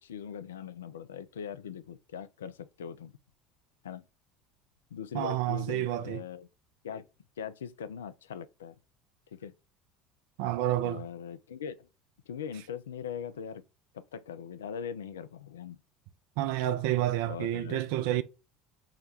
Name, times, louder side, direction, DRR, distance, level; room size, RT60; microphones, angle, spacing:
voice 1, 0.0-3.2 3.8-4.0 4.9-6.5 6.8-7.1 7.4-8.8 9.3-9.5 10.8-11.9 12.3-13.6 13.9-15.8 17.3-17.8, left 7 dB, 70° left, 0.3 m, -41 dB
voice 2, 5.1-6.2 10.4-11.0 16.4-18.2, right 13 dB, 60° right, 0.4 m, -29 dB
4.8 x 2.2 x 4.1 m
figure-of-eight pair, 65°, 0 cm